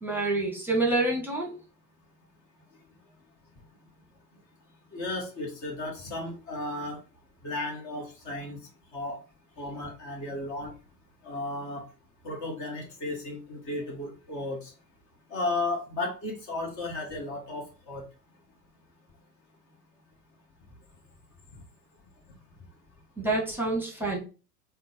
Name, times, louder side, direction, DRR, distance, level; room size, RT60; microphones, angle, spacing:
voice 1, 0.0-1.6 23.2-24.2, right 2 dB, 5° right, -1 dB, 1.2 m, -27 dB
voice 2, 4.9-7.0 7.4-8.6 8.9-9.2 9.6-10.7 11.2-11.8 12.2-14.7 15.3-18.1, left 2 dB, 40° left, 0 dB, 1.5 m, -34 dB
3.7 x 2.2 x 4.3 m, 0.33 s
hypercardioid pair, 95°, 46 cm